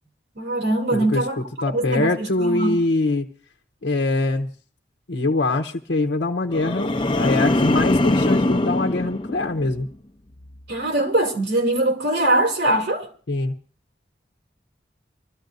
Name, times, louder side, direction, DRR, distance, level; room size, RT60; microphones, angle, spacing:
voice 1, 0.3-1.4 1.7-2.8 10.7-13.1, right 1 dB, 75° right, 2.8 m, -22 dB
voice 2, 0.9-3.3 3.8-4.5 5.1-9.9 13.3-13.5, left 2 dB, 90° left, 0.9 m, -23 dB
sound 1, 6.5-9.9 10.3-10.7, left 1 dB, 30° left, 0.7 m, -22 dB
25.0 x 14.5 x 2.6 m
head